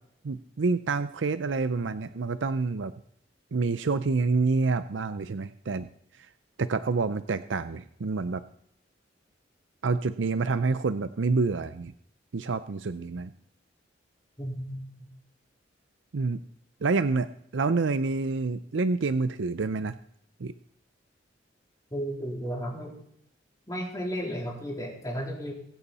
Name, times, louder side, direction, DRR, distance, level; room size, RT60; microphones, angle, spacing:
voice 1, 0.2-2.9 3.5-5.9 6.6-8.4 9.8-11.9 12.3-13.3 16.1-16.4 16.8-17.3 17.5-19.9 20.4-20.5, right 4 dB, 80° right, 12 dB, 0.5 m, -27 dB
voice 2, 14.4-14.8 21.9-22.9 23.7-25.5, equal, 20° left, -2 dB, 3.8 m, -33 dB
23.0 x 8.3 x 4.2 m, 0.69 s
head